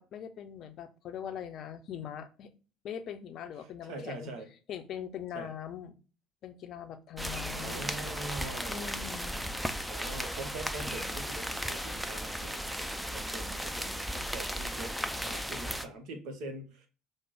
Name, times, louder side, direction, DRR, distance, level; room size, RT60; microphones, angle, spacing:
voice 1, 0.0-2.5 2.8-4.3 4.7-5.9 6.4-7.9 8.7-9.5, left 9 dB, 50° left, 9 dB, 0.5 m, -42 dB
voice 2, 3.8-4.5 5.3-5.5 7.5-9.0 9.9-14.9 15.2-16.9, right 2 dB, 60° right, 5 dB, 0.7 m, -43 dB
sound 1, 7.2-15.9, equal, ahead, 0.4 m, -36 dB
5.0 x 2.0 x 3.4 m, 0.35 s
figure-of-eight pair, 60°, 0 cm